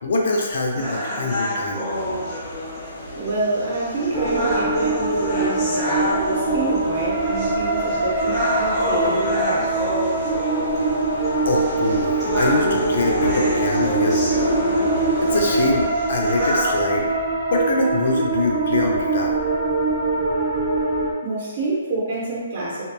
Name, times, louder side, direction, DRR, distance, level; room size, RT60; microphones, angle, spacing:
voice 1, 0.0-1.9 11.4-14.7 15.2-17.1 17.5-19.3, left 2 dB, 60° left, 0 dB, 0.4 m, -23 dB
sound 1, 0.8-16.8, equal, ahead, 0.8 m, -29 dB
sound 2, 1.9-15.9, left 1 dB, 90° left, 0.8 m, -31 dB
voice 2, 3.2-9.8 21.2-22.9, right 2 dB, 45° right, -6 dB, 0.8 m, -27 dB
sound 3, 4.1-21.1, right 3 dB, 25° right, 0.4 m, -23 dB
2.8 x 2.2 x 2.3 m, 1.5 s
hypercardioid pair, 165°, 0 cm